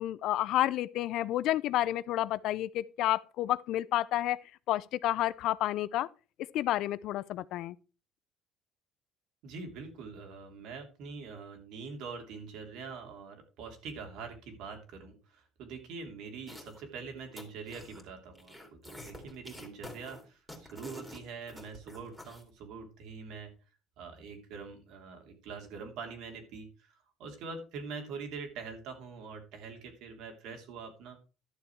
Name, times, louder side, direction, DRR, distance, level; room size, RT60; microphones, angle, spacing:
voice 1, 0.0-4.4 4.7-6.1 6.5-7.7, left 14 dB, 60° left, 0.5 m, -30 dB
voice 2, 9.4-23.5 24.0-31.2, right 5 dB, 70° right, 3.1 m, -44 dB
sound 1, 16.5-16.9 17.2-18.0 18.3-22.4, left 1 dB, ahead, 2.7 m, -48 dB
12.0 x 7.0 x 4.6 m
cardioid pair, 145°, 0 cm